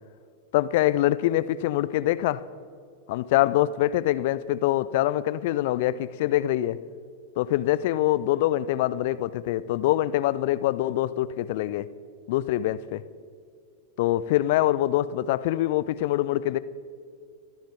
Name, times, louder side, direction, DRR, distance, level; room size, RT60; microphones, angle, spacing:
voice 1, 0.5-2.4 3.1-6.8 7.4-11.9 12.3-13.0 14.0-16.6, left 14 dB, 50° left, 16 dB, 0.5 m, -24 dB
25.0 x 11.5 x 3.5 m, 2.2 s
figure-of-eight pair, 90°, 0 cm